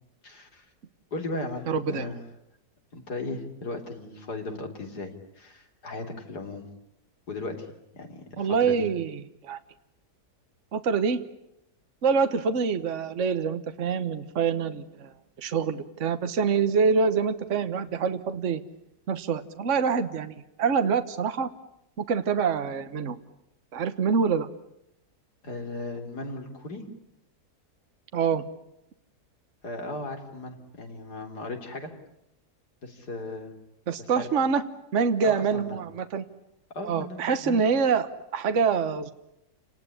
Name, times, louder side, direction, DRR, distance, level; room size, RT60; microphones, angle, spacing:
voice 1, 0.2-0.7 1.1-2.2 2.9-6.6 7.3-7.7 7.9-8.8 25.4-26.9 29.6-31.9 32.8-33.5 34.0-34.3 35.2-35.8 36.7-37.6, left 2 dB, 75° left, 4 dB, 4.0 m, -36 dB
voice 2, 1.7-2.1 8.4-9.6 10.7-11.2 12.0-15.1 15.4-18.6 19.1-21.5 22.0-23.2 23.7-24.5 28.1-28.4 33.9-34.6 34.9-36.2 36.8-39.1, right 5 dB, 50° right, 9 dB, 1.4 m, -25 dB
29.0 x 19.5 x 9.9 m, 0.82 s
omnidirectional pair, 1.7 m